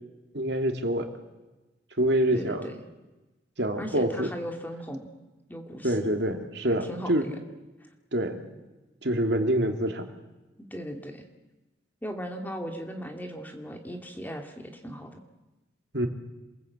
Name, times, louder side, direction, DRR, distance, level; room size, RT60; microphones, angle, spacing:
voice 1, 0.3-1.1 2.0-2.7 3.6-4.3 5.8-7.3 8.1-8.5 9.0-10.1 15.9-16.1, right 1 dB, 65° right, 4 dB, 2.8 m, -26 dB
voice 2, 2.3-2.8 3.8-5.1 5.5-6.1 6.8-7.4 7.8-7.9 10.7-11.2 12.0-15.2, equal, 10° left, 3 dB, 2.3 m, -37 dB
27.5 x 21.5 x 8.5 m, 1.1 s
head